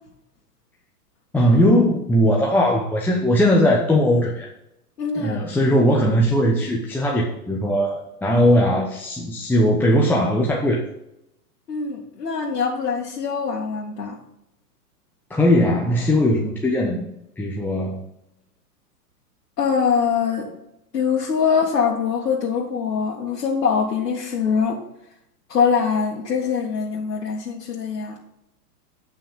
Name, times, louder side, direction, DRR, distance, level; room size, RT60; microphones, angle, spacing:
voice 1, 1.3-4.5 5.2-10.8 15.3-17.1 17.4-18.0, equal, 5° left, -3 dB, 0.8 m, -19 dB
voice 2, 5.0-5.4 11.7-14.2 19.6-20.6 20.9-24.8 25.5-28.2, left 6 dB, 85° left, -4 dB, 2.1 m, -23 dB
9.8 x 6.0 x 5.4 m, 0.83 s
hypercardioid pair, 130°, 47 cm